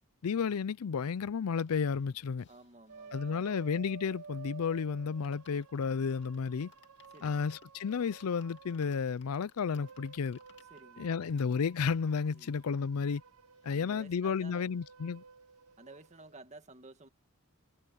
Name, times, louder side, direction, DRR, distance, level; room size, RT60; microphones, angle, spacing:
voice 1, 0.2-2.5 3.1-6.7 7.2-10.4 11.0-13.2 13.6-15.2, left 6 dB, 85° left, 0.5 m, -32 dB
sound 1, 1.6-4.4 4.7-4.8 5.1-11.6 12.2-12.3 12.4-12.5 12.9-13.8 14.1-14.2, left 6 dB, 55° left, 2.3 m, -65 dB
voice 2, 2.5-3.6 7.1-7.5 10.7-11.5 12.3-12.5 13.7-14.7 15.8-17.1, right 2 dB, 30° right, 1.8 m, -54 dB
sound 2, 2.9-9.0 9.5-16.3, right 5 dB, 80° right, 0.9 m, -53 dB
head